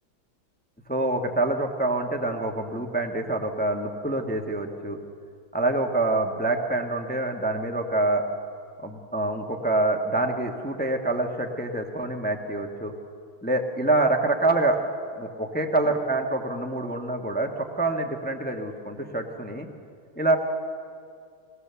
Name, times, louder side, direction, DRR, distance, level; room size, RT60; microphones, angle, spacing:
voice 1, 0.9-5.0 5.5-8.2 8.8-12.9 13.4-14.8 15.1-19.7 20.2-20.4, right 2 dB, 5° left, 3 dB, 0.9 m, -26 dB
21.5 x 17.5 x 6.9 m, 2.3 s
omnidirectional pair, 2.2 m